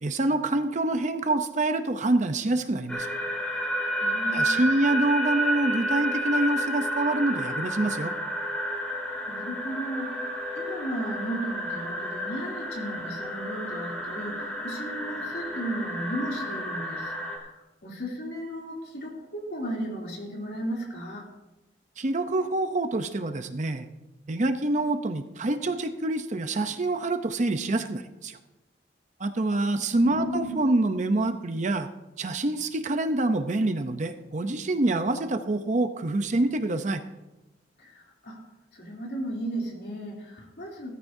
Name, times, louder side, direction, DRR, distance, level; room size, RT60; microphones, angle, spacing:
voice 1, 0.0-3.1 4.3-8.1 22.0-23.9 24.3-28.4 29.2-31.9 32.2-37.0, right 2 dB, 45° right, 9 dB, 0.7 m, -26 dB
sound 1, 2.9-17.4, equal, 5° left, 2.7 m, -31 dB
voice 2, 4.0-4.7 9.3-17.5 17.8-21.2 29.9-30.6 37.8-38.4 38.7-40.9, right 1 dB, 65° left, -2 dB, 3.0 m, -35 dB
17.0 x 13.5 x 2.7 m, 1.0 s
head